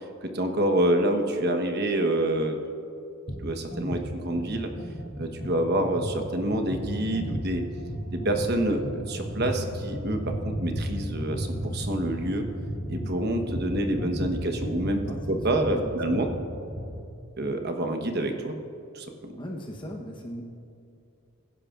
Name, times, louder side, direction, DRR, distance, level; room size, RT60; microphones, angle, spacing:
voice 1, 0.2-2.6 3.4-4.7 5.2-7.6 8.1-12.4 12.9-16.3 17.4-18.5 18.9-19.3, right 1 dB, 50° right, 5 dB, 1.1 m, -27 dB
sound 1, 3.3-3.4 3.7-17.0, equal, 70° left, 2.4 m, -34 dB
voice 2, 15.1-16.4 19.4-20.4, equal, 20° left, 0 dB, 0.9 m, -38 dB
22.5 x 10.5 x 2.5 m, 2.7 s
head